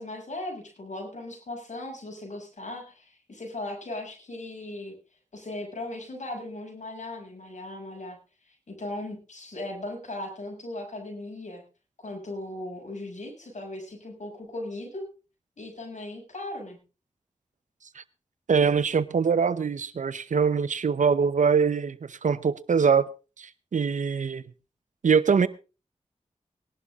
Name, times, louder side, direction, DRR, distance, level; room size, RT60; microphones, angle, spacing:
voice 1, 0.0-4.9 5.3-8.2 8.4-11.6 12.0-15.1 15.6-16.8, left 1 dB, 70° left, 6.8 m, -38 dB
voice 2, 18.5-23.0 23.4-24.4 25.0-25.5, right 6 dB, 85° right, 0.8 m, -23 dB
19.5 x 11.5 x 3.7 m
cardioid pair, 50°, 13 cm